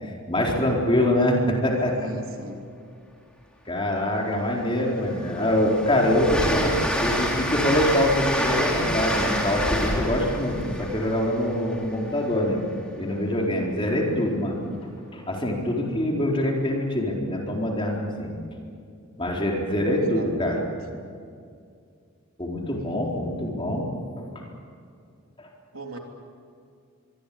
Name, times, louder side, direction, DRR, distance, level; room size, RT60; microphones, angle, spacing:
voice 1, 0.0-1.9 3.7-6.7 7.0-12.6 13.0-14.6 15.1-18.3 19.2-20.6 22.4-23.9 24.2-24.3 25.4-25.5, left 1 dB, 25° left, -1 dB, 4.4 m, -24 dB
voice 2, 1.9-2.6 19.9-20.6 22.8-23.0 25.7-26.0, right 1 dB, 80° right, 2 dB, 3.4 m, -39 dB
Train, 4.1-4.2 4.7-12.4, equal, 5° left, 3.5 m, -27 dB
24.5 x 23.5 x 8.7 m, 2.3 s
head